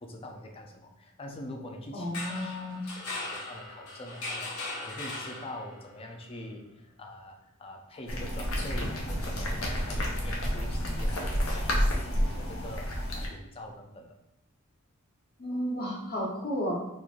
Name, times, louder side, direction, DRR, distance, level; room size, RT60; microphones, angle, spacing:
voice 1, 0.0-12.9 13.1-14.2, left 1 dB, 25° left, 2 dB, 0.4 m, -44 dB
voice 2, 1.9-2.8 15.4-16.8, equal, 45° left, -4 dB, 1.0 m, -32 dB
sound 1, 2.0-5.9, left 2 dB, 90° left, 0.9 m, -38 dB
sound 2, 8.1-13.3, equal, 70° left, 0.7 m, -30 dB
3.0 x 2.5 x 3.6 m, 0.86 s
head